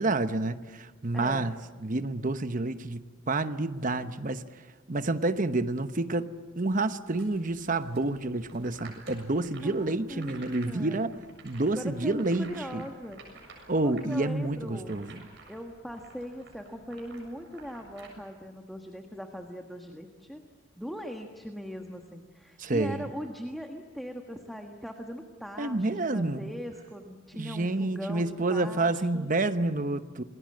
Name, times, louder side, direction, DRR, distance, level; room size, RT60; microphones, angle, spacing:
voice 1, 0.0-4.4 4.9-11.1 11.4-12.8 13.7-15.2 22.6-23.1 25.6-26.4 27.3-30.2, right 2 dB, 40° right, 1.0 m, -29 dB
voice 2, 1.1-1.5 9.6-11.2 11.7-13.2 13.8-15.0 15.5-20.4 20.8-29.3, equal, ahead, 1.4 m, -40 dB
sound 1, 7.1-18.1, right 3 dB, 60° right, 7.2 m, -52 dB
28.0 x 20.5 x 7.7 m
head